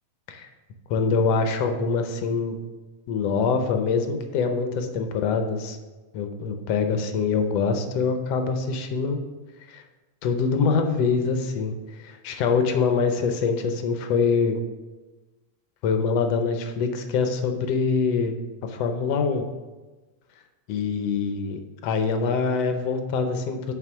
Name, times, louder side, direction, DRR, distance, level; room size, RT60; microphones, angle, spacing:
voice 1, 0.9-2.6 3.1-5.8 6.1-9.2 9.7-9.8 10.2-11.7 12.0-14.6 15.8-19.4 20.7-23.7, left 5 dB, 70° left, 6 dB, 1.6 m, -24 dB
8.0 x 5.5 x 6.0 m, 1.2 s
omnidirectional pair, 3.5 m